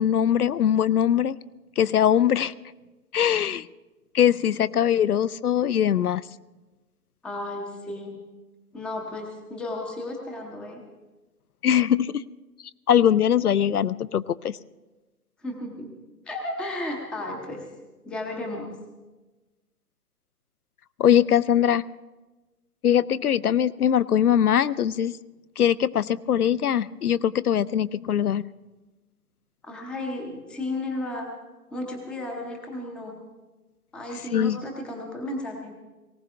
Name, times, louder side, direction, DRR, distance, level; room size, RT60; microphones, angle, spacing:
voice 1, 0.0-1.3 1.8-2.5 3.1-3.7 4.1-6.2 11.6-12.2 12.9-14.6 21.0-21.8 22.8-25.2 25.6-28.5 34.3-34.6, left 9 dB, 75° left, 17 dB, 0.5 m, -21 dB
voice 2, 7.2-8.2 8.7-10.8 15.4-15.9 16.3-17.7 18.0-18.8 29.6-31.3 31.7-33.2 33.9-35.7, left 1 dB, ahead, 1 dB, 0.6 m, -33 dB
19.0 x 18.0 x 3.4 m, 1.2 s
figure-of-eight pair, 120°, 46 cm